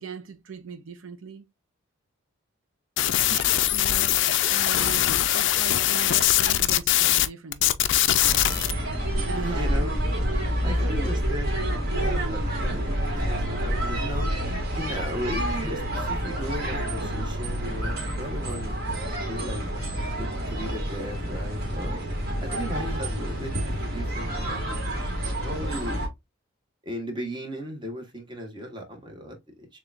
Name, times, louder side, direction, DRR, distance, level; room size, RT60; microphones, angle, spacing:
voice 1, 0.0-1.4 3.3-4.2 4.5-7.8 9.3-9.9 10.6-11.1, right 5 dB, 75° right, 0.5 m, -39 dB
sound 1, 3.0-7.3 7.5-8.7, left 13 dB, 60° left, 0.4 m, -22 dB
sound 2, 8.2-26.1, equal, 45° right, 1.5 m, -28 dB
voice 2, 9.3-9.9 10.6-11.6 11.9-13.0 13.3-14.3 14.8-18.8 19.3-19.7 20.2-22.0 22.4-25.0 25.4-26.0 26.8-29.8, equal, 20° right, 1.1 m, -36 dB
6.5 x 2.3 x 2.4 m
head